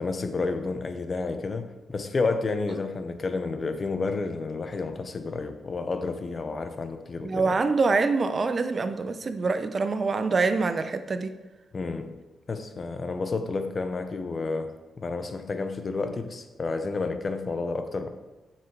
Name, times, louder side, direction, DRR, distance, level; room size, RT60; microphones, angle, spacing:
voice 1, 0.0-7.6 11.7-12.2 12.5-18.1, left 3 dB, 40° left, 8 dB, 0.7 m, -30 dB
voice 2, 7.2-11.3, right 4 dB, 40° right, 10 dB, 0.6 m, -25 dB
7.6 x 5.9 x 4.7 m, 1.1 s
cardioid pair, 100°, 0 cm